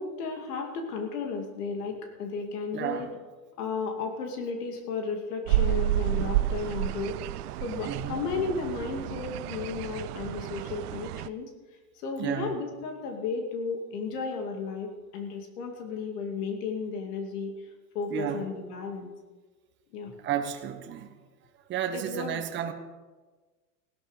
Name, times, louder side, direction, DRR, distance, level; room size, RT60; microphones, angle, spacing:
voice 1, 0.0-3.1 3.6-7.2 7.6-11.5 11.9-17.7 17.9-19.1 19.9-20.1 21.9-22.4, left 4 dB, 65° left, 4 dB, 2.5 m, -34 dB
voice 2, 2.7-3.1 7.8-8.1 12.2-12.5 18.1-18.5 20.2-21.1 21.7-22.7, right 9 dB, 25° right, 5 dB, 1.2 m, -32 dB
sound 1, 5.5-11.3, right 14 dB, 65° right, 0.6 m, -30 dB
16.5 x 12.0 x 5.0 m, 1.3 s
supercardioid pair, 135°, 49 cm